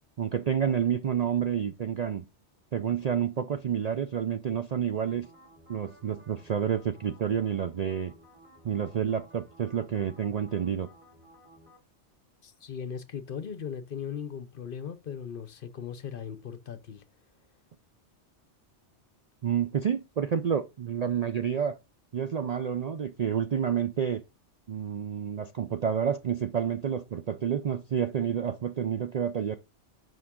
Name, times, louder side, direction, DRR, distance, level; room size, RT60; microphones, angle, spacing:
voice 1, 0.2-2.3 2.7-5.3 5.7-8.1 8.6-10.9 19.4-21.8 22.1-24.2 24.7-29.6, right 8 dB, 55° right, 0.4 m, -29 dB
sound 1, 4.9-11.8, equal, 25° right, 2.5 m, -56 dB
voice 2, 12.4-17.0, left 7 dB, 55° left, 0.9 m, -38 dB
8.5 x 5.4 x 3.7 m
omnidirectional pair, 1.2 m